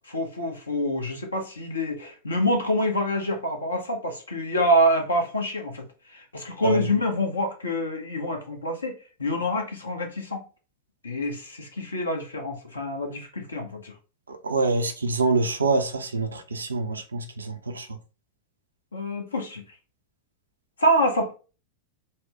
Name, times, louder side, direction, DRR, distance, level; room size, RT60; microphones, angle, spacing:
voice 1, 0.1-5.8 6.1-10.4 11.0-13.9 18.9-19.6 20.8-21.3, equal, 75° left, 0.9 m, -26 dB
voice 2, 14.3-18.0, right 3 dB, 75° right, 0.5 m, -26 dB
4.2 x 2.1 x 3.3 m
figure-of-eight pair, 90°, 0 cm